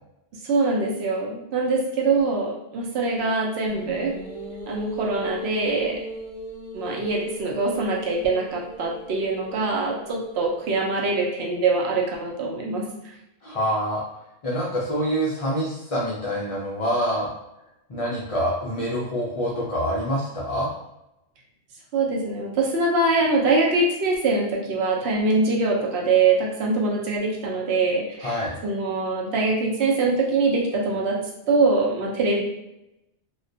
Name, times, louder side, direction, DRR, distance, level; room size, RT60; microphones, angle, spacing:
voice 1, 0.4-4.1 4.7-6.0 6.7-12.9 21.9-31.2 31.5-32.4, right 3 dB, 70° right, -2 dB, 0.8 m, -23 dB
sound 1, 3.7-11.1, equal, 45° right, 0.8 m, -37 dB
voice 2, 13.4-14.0 14.4-17.3 17.9-20.7 28.2-28.6, equal, 60° left, -6 dB, 0.3 m, -26 dB
2.2 x 2.1 x 2.6 m, 0.87 s
omnidirectional pair, 1.2 m